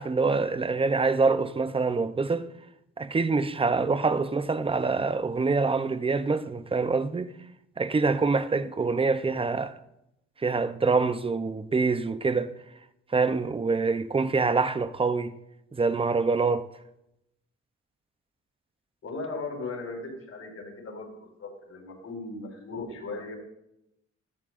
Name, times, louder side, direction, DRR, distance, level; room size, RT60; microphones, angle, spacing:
voice 1, 0.0-2.5 3.0-7.3 7.8-9.8 10.4-12.5 13.1-15.4 15.7-16.7, right 4 dB, 20° right, 0.6 m, -25 dB
voice 2, 19.0-23.3, left 3 dB, 55° left, 5.6 m, -37 dB
18.5 x 13.5 x 2.6 m
cardioid pair, 90°, 30 cm